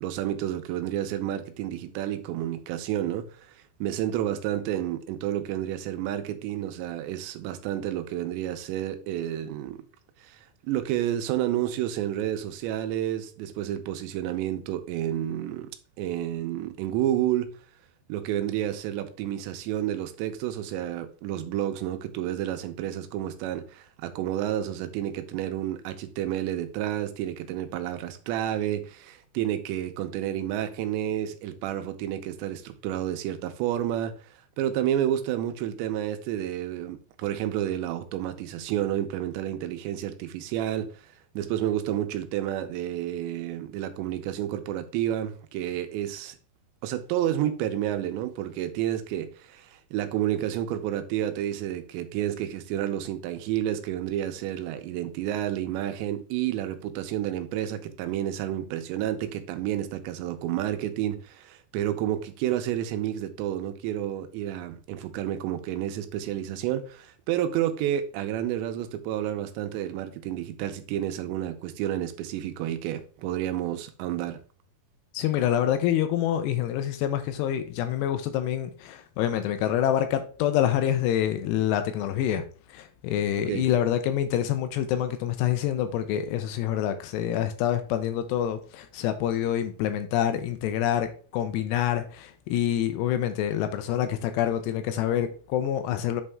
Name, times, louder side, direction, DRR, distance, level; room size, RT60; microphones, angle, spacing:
voice 1, 0.0-3.3 3.8-9.8 10.2-15.7 16.0-17.5 18.1-34.1 34.6-46.4 46.8-74.4 83.4-83.7, right 11 dB, 85° right, 2.9 m, -30 dB
voice 2, 75.1-96.2, left 10 dB, 85° left, 2.6 m, -26 dB
8.2 x 4.3 x 3.5 m
omnidirectional pair, 5.0 m